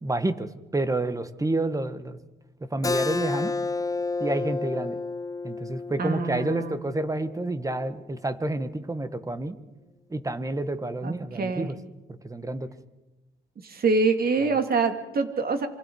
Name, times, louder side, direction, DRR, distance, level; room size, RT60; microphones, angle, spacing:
voice 1, 0.0-2.2 2.7-3.5 4.2-5.0 5.4-9.6 10.1-11.8 12.1-12.7, right 2 dB, 15° right, 11 dB, 1.5 m, -29 dB
Keyboard (musical), 2.8-8.0, left 3 dB, 15° left, 0.7 m, -31 dB
voice 2, 6.0-6.7 11.0-11.7 13.6-15.7, right 4 dB, 50° right, 6 dB, 2.7 m, -25 dB
27.0 x 25.0 x 4.8 m, 1.1 s
cardioid pair, 90°, 20 cm